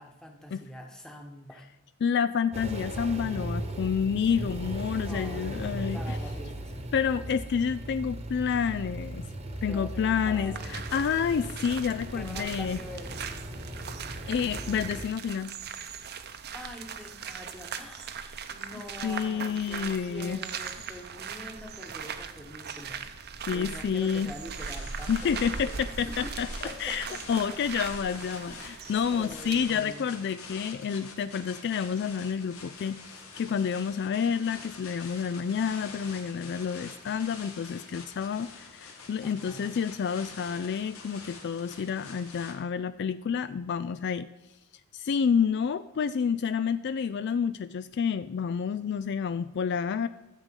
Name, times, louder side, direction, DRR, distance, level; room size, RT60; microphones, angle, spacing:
voice 1, 0.0-1.7 5.0-6.7 9.4-10.8 12.1-13.3 16.5-23.0 23.5-26.3 26.6-27.6 28.5-30.1 39.2-39.8, equal, 5° left, 3 dB, 1.3 m, -45 dB
voice 2, 2.0-6.2 6.9-9.3 9.6-12.8 14.3-15.5 19.0-20.4 23.5-24.3 25.1-44.3 44.9-50.1, left 7 dB, 50° left, 14 dB, 0.3 m, -29 dB
sound 1, 2.5-15.1, right 1 dB, 30° right, 1.1 m, -37 dB
sound 2, 10.5-29.8, right 6 dB, 45° right, 0.8 m, -40 dB
sound 3, 24.5-42.5, left 4 dB, 70° left, 1.8 m, -46 dB
13.0 x 7.4 x 5.4 m, 1.0 s
head